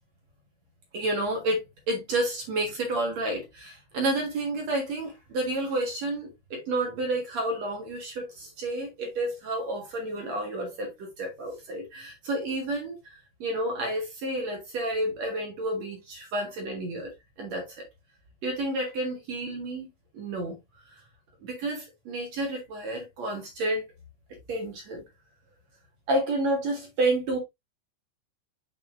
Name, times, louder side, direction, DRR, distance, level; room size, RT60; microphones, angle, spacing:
voice 1, 0.9-13.0 13.4-17.1 17.4-17.9 18.4-19.9 20.1-20.6 20.9-21.0 21.4-23.8 24.5-25.0 26.1-27.4, right 1 dB, 55° right, 2.3 m, -30 dB
7.5 x 5.4 x 2.5 m
omnidirectional pair, 4.7 m